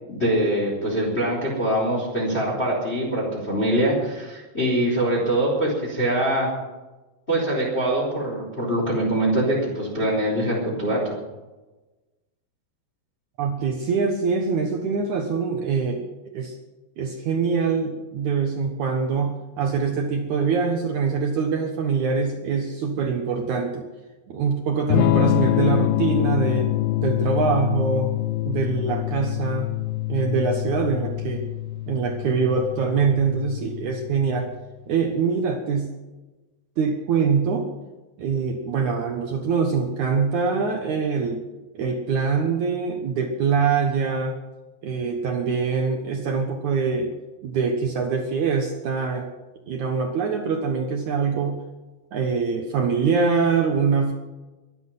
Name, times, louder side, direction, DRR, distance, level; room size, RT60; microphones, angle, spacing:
voice 1, 0.1-6.5 7.3-11.2, right 1 dB, 15° left, -3 dB, 3.9 m, -23 dB
voice 2, 13.4-16.0 16.3-16.5 17.0-23.9 24.3-26.7 27.0-28.1 28.4-29.7 30.1-31.4 31.9-34.5 34.9-35.9 36.8-37.7 38.2-41.4 41.8-44.4 44.8-47.1 47.4-49.3 49.7-51.6 52.1-54.1, right 5 dB, 85° right, 3 dB, 1.6 m, -24 dB
Electric guitar / Strum, 24.9-34.7, left 15 dB, 85° left, 2.2 m, -25 dB
24.0 x 9.9 x 5.7 m, 1.2 s
omnidirectional pair, 5.4 m